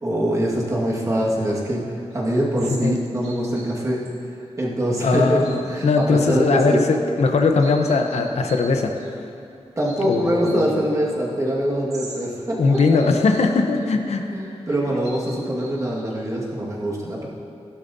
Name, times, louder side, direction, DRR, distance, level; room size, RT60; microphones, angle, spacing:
voice 1, 0.0-4.3 4.6-5.4 5.7-6.8 9.8-12.8 14.3-17.3, right 1 dB, 30° right, -4 dB, 1.7 m, -23 dB
sound 1, 2.1-2.9 3.2-3.7 4.1-4.2 5.4-6.2 6.8-6.9 7.4-8.7 9.0-9.1 9.8-10.6 11.5-11.6 11.9-12.2 12.6-13.5 13.8-13.9 14.5-16.1, right 2 dB, 85° right, 2.0 m, -42 dB
voice 2, 5.0-8.9 10.0-10.6 12.6-14.2, left 4 dB, 85° left, 4 dB, 0.9 m, -19 dB
16.0 x 11.5 x 2.7 m, 2.6 s
wide cardioid pair, 160°, 11 cm